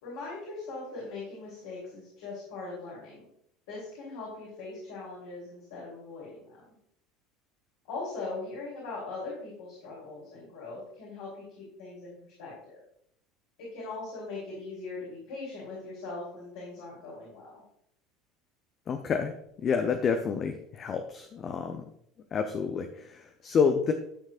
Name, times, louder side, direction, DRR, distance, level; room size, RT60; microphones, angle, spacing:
voice 1, 0.0-3.3 3.7-6.4 7.8-12.8 13.6-17.6, left 3 dB, 65° left, -6 dB, 3.2 m, -40 dB
voice 2, 18.9-19.3 19.6-21.8 22.3-23.9, left 6 dB, 40° left, 6 dB, 0.7 m, -28 dB
11.5 x 6.5 x 2.5 m, 0.72 s
figure-of-eight pair, 70°, 0 cm